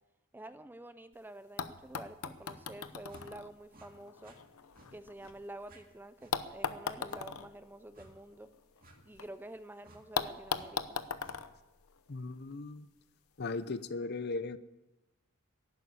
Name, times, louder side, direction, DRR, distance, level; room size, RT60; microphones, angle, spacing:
voice 1, 0.3-4.4 4.9-8.5 9.0-11.0, right 1 dB, 10° right, 12 dB, 0.4 m, -49 dB
sound 1, 1.1-1.2 1.6-5.7 6.3-9.3 9.6-9.7 10.2-12.5 13.5-13.6, left 6 dB, 90° left, 0.8 m, -40 dB
sound 2, 2.4-2.6 3.1-3.3 3.7-3.9 4.2-4.4 4.7-4.9 5.2-5.3 5.6-5.8 6.2-6.4 7.0-7.2 7.9-8.1 8.8-9.0 9.8-10.0 10.5-10.7 11.2-11.4, right 2 dB, 45° right, 2.1 m, -58 dB
voice 2, 12.1-12.9 13.4-14.6, left 3 dB, 50° left, 14 dB, 0.7 m, -37 dB
11.5 x 11.0 x 8.6 m, 1.0 s
head